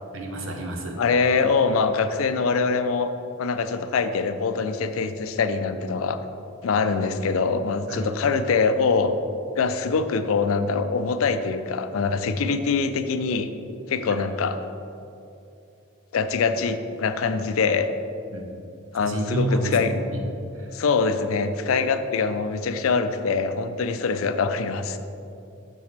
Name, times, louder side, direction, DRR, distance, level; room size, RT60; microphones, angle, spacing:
voice 1, 0.1-1.0 7.9-8.1 18.3-18.5 19.0-20.2 20.5-20.7, right 1 dB, 80° right, 2 dB, 0.9 m, -28 dB
voice 2, 1.0-3.1 3.4-6.2 6.6-9.1 9.5-13.5 13.9-14.6 16.1-17.9 18.9-19.9 20.7-25.0, left 4 dB, 90° left, 10 dB, 0.4 m, -24 dB
7.0 x 6.7 x 3.3 m, 2.7 s
head